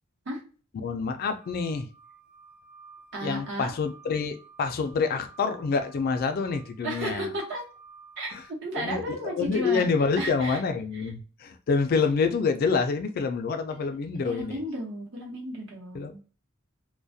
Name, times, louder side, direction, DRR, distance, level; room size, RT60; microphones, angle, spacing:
voice 1, 0.8-1.9 3.2-7.3 8.3-8.4 8.8-14.6 15.9-16.2, left 5 dB, 45° left, 8 dB, 0.3 m, -27 dB
sound 1, 1.4-8.5, right 4 dB, 35° right, 0.7 m, -53 dB
voice 2, 3.1-3.7 6.8-7.6 8.2-8.4 8.6-9.9 10.2-10.6 10.9-11.1 13.7-13.8 14.2-16.2, right 1 dB, 60° right, -3 dB, 0.9 m, -33 dB
2.3 x 2.1 x 2.6 m, 0.36 s
head